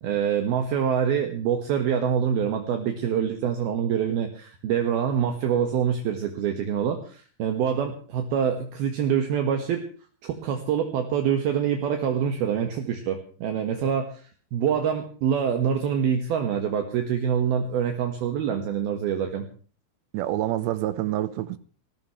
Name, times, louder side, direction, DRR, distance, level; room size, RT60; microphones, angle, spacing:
voice 1, 0.0-9.9 10.2-19.4, right 8 dB, 65° right, 3.2 m, -25 dB
voice 2, 20.1-21.6, right 14 dB, 85° right, 3.2 m, -27 dB
19.5 x 19.5 x 3.2 m
omnidirectional pair, 5.1 m